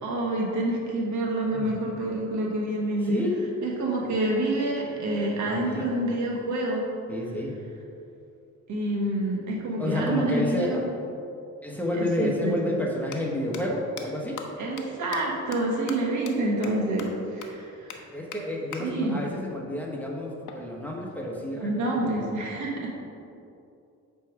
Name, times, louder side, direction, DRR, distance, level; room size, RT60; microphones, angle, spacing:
voice 1, 0.0-3.2 3.6-6.9 8.7-10.8 12.0-12.7 14.6-18.0 18.8-19.2 21.5-22.9, right 1 dB, 75° right, -2 dB, 1.4 m, -28 dB
voice 2, 3.0-3.5 5.4-5.9 7.1-7.6 9.8-10.8 11.6-14.4 18.1-22.4, left 1 dB, 5° left, -2 dB, 1.1 m, -30 dB
sound 1, 11.8-11.9 12.9-13.2 13.5-13.6 14.0-14.1 14.4-14.5 14.8-14.9 15.1-15.2 15.5-15.6 15.9-16.0 16.3-16.4 16.6-16.7 17.0-17.1 17.4-17.5 17.9-18.0 18.3-18.4 18.7-18.8 20.5-21.5, left 8 dB, 80° left, 0.8 m, -40 dB
8.3 x 3.5 x 4.7 m, 2.6 s
cardioid pair, 90°, 30 cm